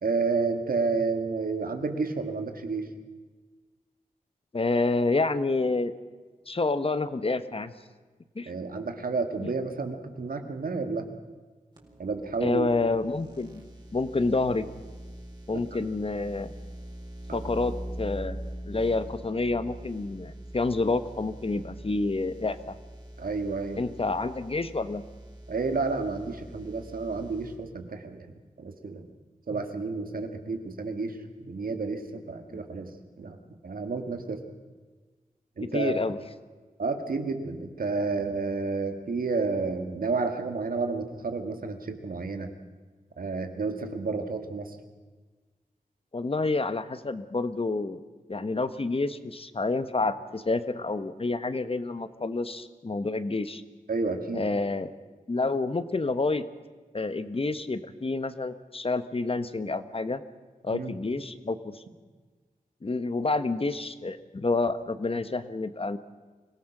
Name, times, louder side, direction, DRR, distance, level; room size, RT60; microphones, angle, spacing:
voice 1, 0.0-2.9 8.4-11.1 12.0-12.7 15.5-15.6 17.3-17.4 23.2-23.8 25.5-28.3 28.6-29.1 29.5-32.9 33.2-33.4 33.6-34.4 35.6-36.0 36.8-42.5 43.2-44.8 53.9-54.4 60.7-60.9, right 4 dB, 90° right, 6 dB, 2.1 m, -30 dB
voice 2, 4.5-5.9 6.5-7.7 8.3-8.5 9.4-9.5 12.4-13.6 13.9-14.7 15.5-16.5 17.3-18.4 18.7-22.6 23.7-25.0 29.5-29.6 35.6-36.2 46.1-48.0 48.3-53.6 54.3-54.9 55.3-56.4 56.9-60.2 60.6-61.8 62.8-66.0, left 3 dB, 40° left, 12 dB, 1.1 m, -28 dB
sound 1, 11.8-27.6, right 1 dB, 30° right, 4.0 m, -43 dB
25.0 x 17.5 x 6.1 m, 1.4 s
wide cardioid pair, 90°, 14 cm